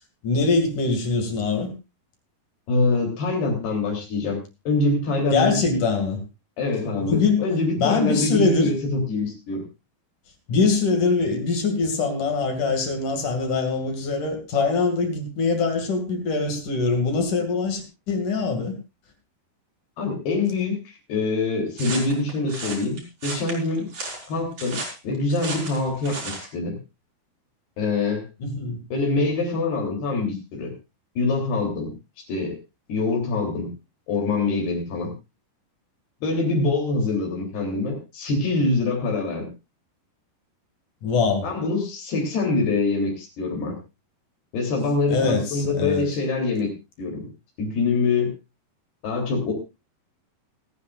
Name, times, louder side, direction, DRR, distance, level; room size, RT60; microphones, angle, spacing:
voice 1, 0.2-1.7 5.3-6.2 7.0-7.4 7.8-8.8 10.5-18.7 28.4-28.8 41.0-41.5 45.1-46.1, left 4 dB, 55° left, 5 dB, 3.7 m, -23 dB
voice 2, 2.7-4.4 4.7-5.8 6.6-9.6 20.0-23.9 24.3-24.8 25.0-26.8 27.8-28.2 28.9-30.7 31.2-31.9 32.3-32.6 32.9-33.7 34.1-35.1 36.2-39.4 41.4-43.8 44.5-46.7 47.0-47.3 47.6-48.3 49.0-49.5, left 3 dB, 75° left, 0 dB, 5.5 m, -24 dB
sound 1, 21.8-26.5, right 3 dB, 45° right, 6.0 m, -34 dB
28.0 x 9.4 x 2.5 m, 0.26 s
omnidirectional pair, 4.7 m